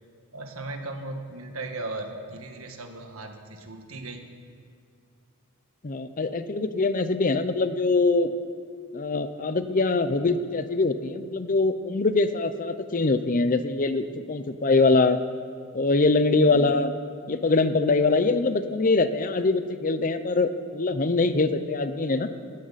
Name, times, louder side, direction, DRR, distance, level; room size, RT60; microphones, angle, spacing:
voice 1, 0.3-4.2, right 2 dB, 90° right, 4 dB, 1.6 m, -37 dB
voice 2, 5.8-8.3 8.9-15.2 15.7-16.9 17.3-22.3, left 3 dB, 40° left, 11 dB, 0.6 m, -23 dB
17.5 x 14.0 x 4.2 m, 2.3 s
head